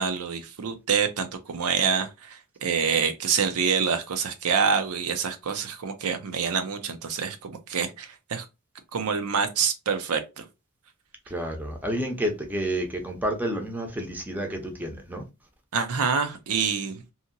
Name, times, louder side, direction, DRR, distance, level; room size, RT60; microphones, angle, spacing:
voice 1, 0.0-8.4 8.9-10.4 15.7-17.1, right 6 dB, 75° right, 0.5 m, -26 dB
voice 2, 11.3-15.2, right 1 dB, 10° right, 0.7 m, -30 dB
2.8 x 2.7 x 2.5 m
head